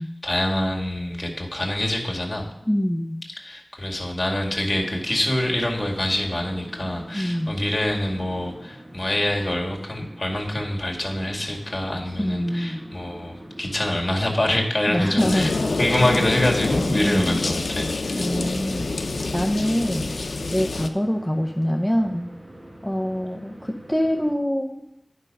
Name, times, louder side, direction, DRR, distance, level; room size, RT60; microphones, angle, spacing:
voice 1, 0.2-2.5 3.4-18.3, left 1 dB, 35° left, 0 dB, 2.1 m, -25 dB
voice 2, 2.7-3.2 7.1-7.5 12.2-12.8 14.9-15.5 17.0-17.5 18.1-18.9 19.3-20.2 20.5-22.3 22.8-24.8, equal, ahead, 1 dB, 0.7 m, -24 dB
sound 1, 4.6-24.3, right 1 dB, 30° right, 1.2 m, -44 dB
sound 2, 15.2-20.9, left 3 dB, 85° left, 0.6 m, -26 dB
9.7 x 5.5 x 5.4 m, 0.84 s
cardioid pair, 40°, 0 cm